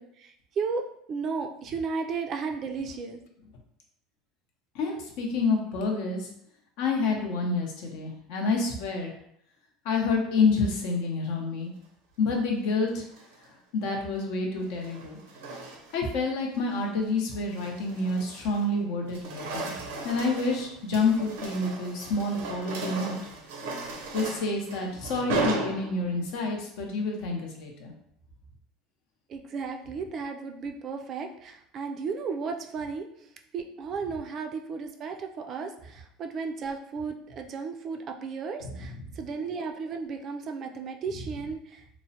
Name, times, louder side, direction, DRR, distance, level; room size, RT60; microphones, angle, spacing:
voice 1, 0.0-3.2 29.3-33.1 33.5-41.8, right 5 dB, 40° right, 5 dB, 0.3 m, -34 dB
voice 2, 4.7-6.3 6.8-9.1 9.8-11.7 12.2-13.0 13.7-15.2 15.9-19.7 20.0-23.2 24.1-27.9 38.6-39.0, left 3 dB, 70° left, 1 dB, 0.7 m, -28 dB
sound 1, 13.0-13.4 14.6-16.1 16.5-16.8 17.3-18.7 19.0-26.3, right 2 dB, 90° right, 0.5 m, -36 dB
3.0 x 2.0 x 2.7 m, 0.72 s
supercardioid pair, 135°, 0 cm